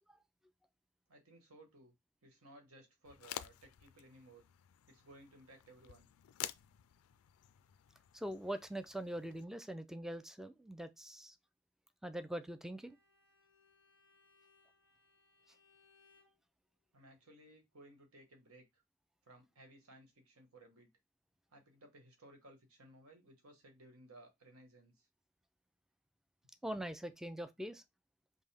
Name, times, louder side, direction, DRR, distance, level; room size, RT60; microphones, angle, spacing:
voice 1, 1.1-1.9 2.2-4.4 4.9-6.1 16.9-18.8 19.2-20.9 21.5-25.1, right 1 dB, 80° right, 1.3 m, -60 dB
sound 1, 3.0-9.4, left 12 dB, 85° left, 0.3 m, -50 dB
voice 2, 8.1-11.4 12.0-13.0 26.6-27.8, right 1 dB, ahead, 0.3 m, -43 dB
Bowed string instrument, 12.7-16.4, left 4 dB, 50° right, 1.8 m, -70 dB
5.3 x 2.1 x 3.3 m
head